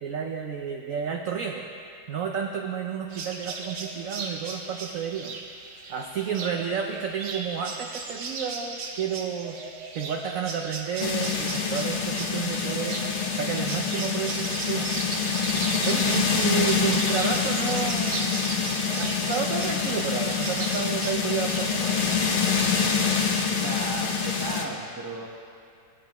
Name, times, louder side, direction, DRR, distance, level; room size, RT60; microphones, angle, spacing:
voice 1, 0.0-1.6 2.1-5.4 5.9-9.6 9.9-13.0 13.3-15.0 15.8-18.2 18.9-22.2, right 7 dB, 85° right, 3 dB, 0.7 m, -31 dB
sound 1, 3.1-22.3, right 4 dB, 60° right, 1.3 m, -37 dB
sound 2, 11.0-24.6, left 5 dB, 85° left, 0.4 m, -26 dB
voice 2, 23.5-25.3, right 2 dB, 35° right, 0 dB, 0.3 m, -35 dB
16.0 x 9.7 x 3.0 m, 2.3 s
omnidirectional pair, 2.1 m